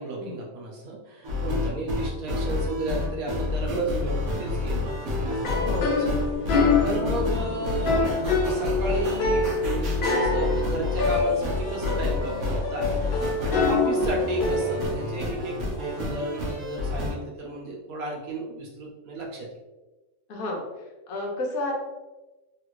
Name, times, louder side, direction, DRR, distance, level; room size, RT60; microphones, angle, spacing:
voice 1, 0.0-5.5 6.0-12.9 13.4-19.6, right 2 dB, 80° right, -2 dB, 1.3 m, -33 dB
sound 1, 1.2-17.1, left 3 dB, 60° right, 1.0 m, -29 dB
sound 2, 5.3-16.0, left 3 dB, 60° left, 0.5 m, -26 dB
voice 2, 5.6-6.0 20.3-20.7 21.1-21.7, left 2 dB, 80° left, -1 dB, 1.2 m, -31 dB
3.2 x 2.5 x 3.0 m, 1.1 s
omnidirectional pair, 1.5 m